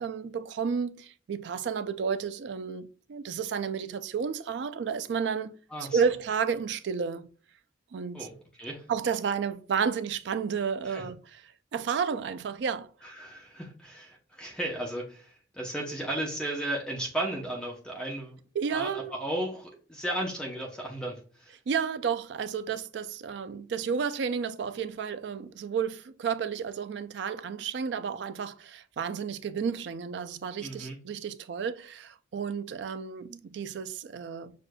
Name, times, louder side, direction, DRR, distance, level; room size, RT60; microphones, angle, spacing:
voice 1, 0.0-5.5 5.8-7.3 7.9-8.3 8.9-11.4 11.7-12.9 18.6-19.1 21.7-34.5, right 6 dB, 65° right, 0.3 m, -31 dB
voice 2, 5.7-6.0 8.1-8.3 8.6-8.8 10.8-11.0 13.0-18.4 18.7-21.6 30.6-31.0, right 1 dB, 5° left, 0.7 m, -35 dB
6.3 x 2.5 x 2.2 m
head